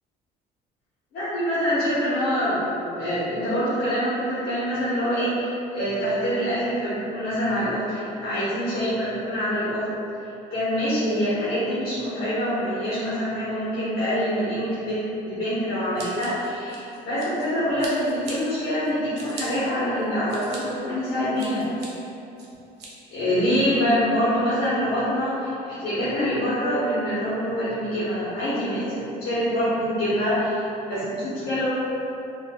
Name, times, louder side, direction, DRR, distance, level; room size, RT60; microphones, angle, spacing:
voice 1, 1.1-9.9 10.5-21.6 23.1-30.6 30.9-31.7, equal, 75° left, -12 dB, 1.1 m, -25 dB
Scissors, 16.0-17.5 17.8-18.3 18.8-19.4 20.0-20.6 21.0-21.9 22.4-22.9, right 3 dB, 85° right, 0.7 m, -40 dB
3.9 x 2.5 x 2.3 m, 2.8 s
cardioid pair, 110°, 17 cm